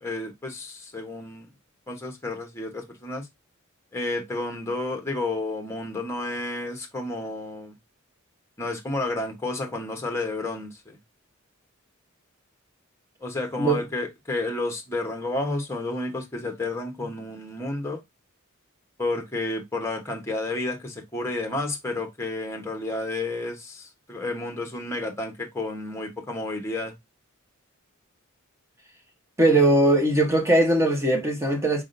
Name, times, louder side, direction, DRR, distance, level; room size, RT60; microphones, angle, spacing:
voice 1, 0.0-1.5 1.9-3.3 3.9-7.8 8.6-11.0 13.2-18.0 19.0-26.9, left 2 dB, 10° left, 1.0 m, -31 dB
voice 2, 29.4-31.8, right 1 dB, 15° right, 1.0 m, -20 dB
4.3 x 3.6 x 2.5 m
head